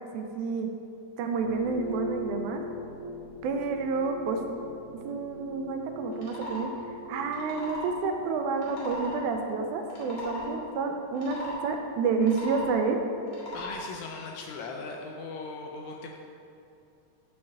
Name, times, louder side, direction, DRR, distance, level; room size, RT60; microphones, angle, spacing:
voice 1, 0.1-0.7 1.2-2.6 3.4-4.4 5.1-6.7 7.1-13.0, right 4 dB, 80° right, 4 dB, 1.9 m, -29 dB
sound 1, 1.4-14.5, left 2 dB, 45° right, 0.4 m, -43 dB
sound 2, 6.1-6.6 7.3-7.9 8.6-9.2 9.8-10.5 11.1-11.6 12.1-12.7 13.3-13.8, left 1 dB, 25° left, 1.1 m, -38 dB
voice 2, 13.5-16.2, left 4 dB, 75° left, 1 dB, 1.7 m, -39 dB
5.8 x 5.4 x 6.8 m, 2.6 s
omnidirectional pair, 3.6 m